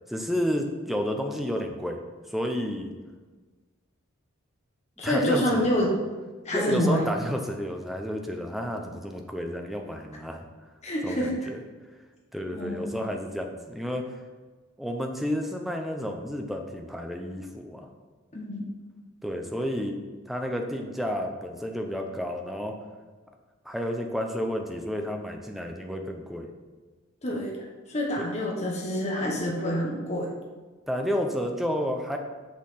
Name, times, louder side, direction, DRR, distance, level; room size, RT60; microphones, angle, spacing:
voice 1, 0.1-2.0 2.3-2.9 5.0-5.7 6.5-10.5 11.0-11.6 12.3-14.0 14.8-17.9 19.2-20.0 20.3-22.8 23.7-26.5 28.2-28.3 30.9-32.2, equal, ahead, 3 dB, 0.5 m, -31 dB
voice 2, 5.0-5.9 6.4-7.0 10.8-11.3 12.5-13.0 18.3-18.6 27.2-27.6 27.9-30.3, equal, 30° left, -2 dB, 1.1 m, -27 dB
6.2 x 5.7 x 4.2 m, 1.3 s
head